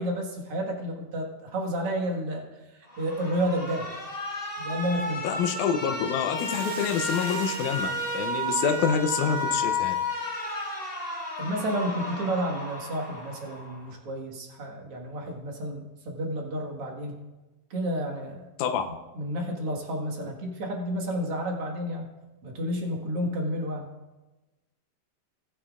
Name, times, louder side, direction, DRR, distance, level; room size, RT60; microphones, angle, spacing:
voice 1, 0.0-2.5 3.0-3.9 4.6-5.3 11.4-17.2 17.7-18.4 19.1-22.1 22.4-23.9, equal, 50° right, 0 dB, 2.3 m, -31 dB
Alarm, 2.9-13.9, left 1 dB, 20° left, 1.5 m, -33 dB
voice 2, 5.2-10.0 18.6-18.8, left 7 dB, 75° left, 4 dB, 1.9 m, -27 dB
Hiss, 6.4-10.9, right 9 dB, 85° right, 2.6 m, -45 dB
19.5 x 9.0 x 2.5 m, 1.1 s
omnidirectional pair, 4.0 m